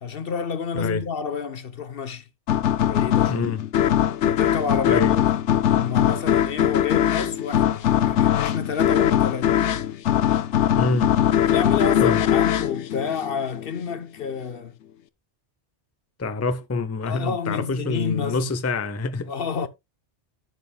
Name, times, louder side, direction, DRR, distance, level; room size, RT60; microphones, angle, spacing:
voice 1, 0.0-2.3 2.8-3.4 4.3-5.2 5.6-9.6 11.5-14.7 17.0-18.5 19.3-19.7, left 6 dB, 60° left, 1.0 m, -29 dB
sound 1, 2.5-13.7, left 10 dB, 90° left, 1.0 m, -21 dB
voice 2, 3.3-3.6 4.8-5.2 10.8-11.1 12.0-12.2 16.2-19.3, left 3 dB, 20° left, 0.6 m, -26 dB
11.0 x 8.3 x 2.2 m
omnidirectional pair, 1.2 m